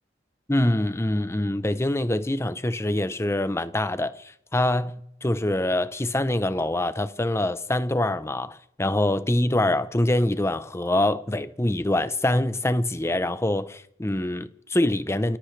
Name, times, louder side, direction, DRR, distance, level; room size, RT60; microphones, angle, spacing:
voice 1, 0.5-15.4, left 1 dB, 15° left, 0.7 m, -25 dB
29.0 x 14.5 x 3.3 m
head